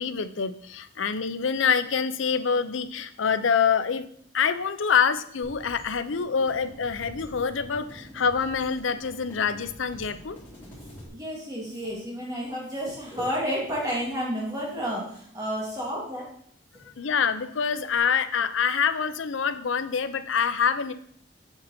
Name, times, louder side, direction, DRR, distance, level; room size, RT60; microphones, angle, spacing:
voice 1, 0.0-4.1 4.3-10.4 17.0-20.9, left 6 dB, 90° left, 12 dB, 0.6 m, -26 dB
sound 1, 5.4-11.1, equal, 10° left, 3.6 m, -46 dB
voice 2, 11.1-16.3, equal, 20° right, -4 dB, 2.8 m, -31 dB
7.9 x 6.9 x 4.3 m, 0.63 s
head